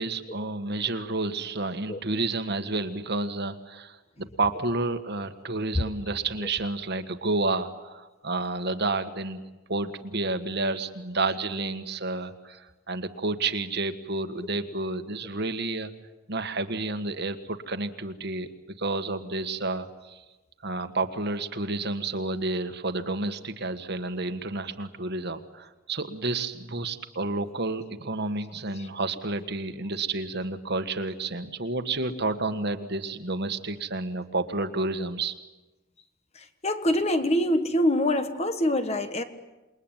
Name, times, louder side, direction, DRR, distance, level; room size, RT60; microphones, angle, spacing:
voice 1, 0.0-9.4 9.7-15.9 16.3-18.5 18.8-20.2 20.6-35.3, right 3 dB, 50° right, 9 dB, 1.6 m, -30 dB
voice 2, 36.6-39.2, left 1 dB, 30° left, 9 dB, 1.5 m, -24 dB
28.0 x 22.0 x 9.2 m, 1.1 s
head